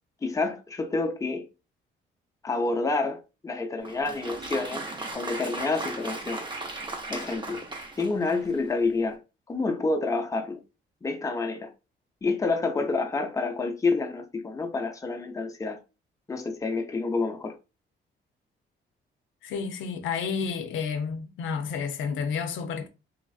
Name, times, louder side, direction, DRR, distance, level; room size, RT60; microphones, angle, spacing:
voice 1, 0.2-1.5 2.4-4.9 5.1-6.5 7.1-7.6 8.0-9.2 9.5-10.6 11.0-11.7 12.2-15.8 16.3-17.5, left 3 dB, 15° left, 0.5 m, -28 dB
Applause, 3.8-8.7, right 2 dB, 25° right, 0.7 m, -37 dB
voice 2, 19.4-22.9, left 6 dB, 80° left, 0.5 m, -30 dB
3.2 x 2.4 x 2.3 m
cardioid pair, 90°, 20 cm